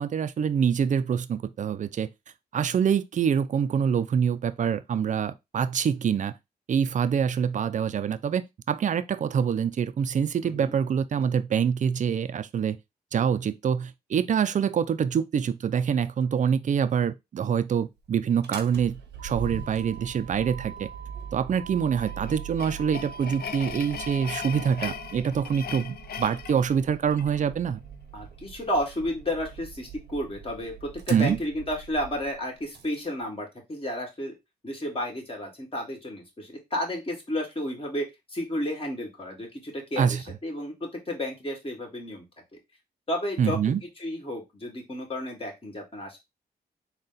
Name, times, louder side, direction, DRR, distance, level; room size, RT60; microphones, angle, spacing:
voice 1, 0.0-2.1 2.5-6.3 6.7-12.8 13.1-20.9 21.3-27.8 31.1-31.4 40.0-40.2 43.4-43.8, right 7 dB, 50° right, 0.4 m, -25 dB
voice 2, 10.4-10.7 28.1-34.4 34.6-42.3 43.1-43.6 44.0-46.2, left 1 dB, 35° left, 2.0 m, -32 dB
Motor vehicle (road), 18.4-33.0, right 7 dB, 85° right, 0.7 m, -41 dB
sound 1, 21.9-27.5, left 8 dB, 65° left, 0.4 m, -39 dB
3.9 x 2.3 x 3.9 m
cardioid pair, 70°, 17 cm